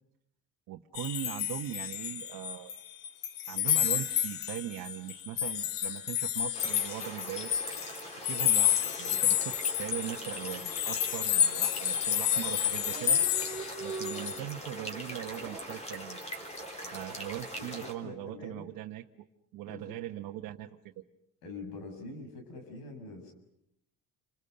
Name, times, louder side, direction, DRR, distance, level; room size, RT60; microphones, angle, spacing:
voice 1, 0.7-2.7 3.5-7.5 8.1-13.2 13.8-16.2 16.9-19.0 19.5-21.0, right 13 dB, 70° right, 3 dB, 1.2 m, -40 dB
sound 1, 0.9-2.8 3.0-14.4, left 10 dB, 70° left, 1.5 m, -30 dB
sound 2, 6.5-17.9, equal, 20° left, 3.8 m, -42 dB
Dog, 9.4-9.7 10.0-10.1 10.3-11.0 11.6-11.8 12.2-12.3 12.4-12.5 12.7-15.6, right 4 dB, 15° right, 2.8 m, -43 dB
voice 2, 17.5-18.7 19.7-19.9 21.4-23.3, left 2 dB, 85° left, 6 dB, 6.9 m, -45 dB
30.0 x 26.5 x 6.7 m, 0.80 s
cardioid pair, 180°, 34 cm